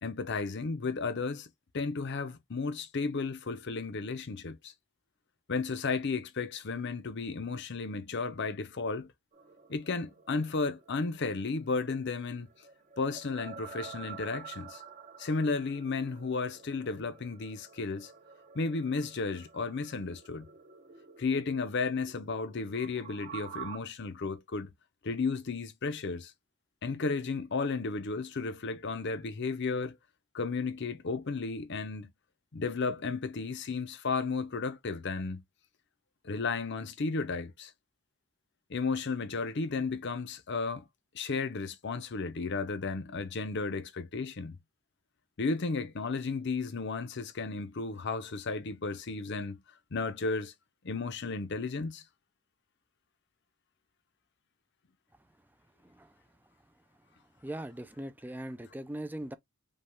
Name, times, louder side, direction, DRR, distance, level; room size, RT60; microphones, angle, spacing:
voice 1, 0.0-1.5 1.7-4.7 5.5-9.1 9.7-12.5 13.0-14.8 15.2-18.1 18.5-20.5 21.2-24.7 25.0-26.3 26.8-30.0 30.3-32.1 32.5-35.4 36.2-37.7 38.7-40.9 41.1-44.6 45.4-49.6 49.9-50.5 50.8-52.0, left 4 dB, 50° left, 0.6 m, -33 dB
sound 1, 9.3-23.8, right 7 dB, 35° right, 0.7 m, -49 dB
voice 2, 55.8-56.1 57.4-59.3, right 1 dB, 10° right, 0.3 m, -40 dB
5.3 x 2.3 x 3.4 m
head